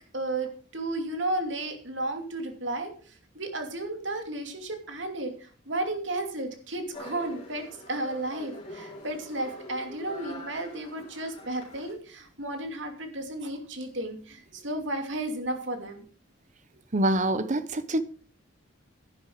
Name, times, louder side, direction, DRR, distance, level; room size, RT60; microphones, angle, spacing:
voice 1, 0.1-2.9 3.3-16.0, right 2 dB, 65° right, 2.7 m, -33 dB
sound 1, 6.9-11.9, left 1 dB, 35° left, 4.0 m, -45 dB
voice 2, 16.9-18.0, right 1 dB, 40° right, 0.8 m, -25 dB
11.0 x 11.0 x 4.7 m
head